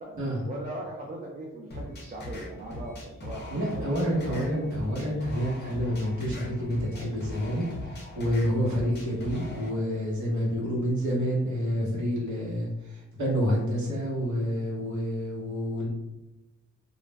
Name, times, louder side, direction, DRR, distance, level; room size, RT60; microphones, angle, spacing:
voice 1, 0.4-3.9 4.2-4.6, right 1 dB, 30° right, -2 dB, 0.4 m, -39 dB
sound 1, 1.7-9.7, left 1 dB, 35° left, 0.6 m, -40 dB
voice 2, 3.5-12.7 13.2-15.9, equal, 70° right, -4 dB, 1.0 m, -28 dB
2.4 x 2.0 x 3.1 m, 1.0 s
wide cardioid pair, 160°, 30 cm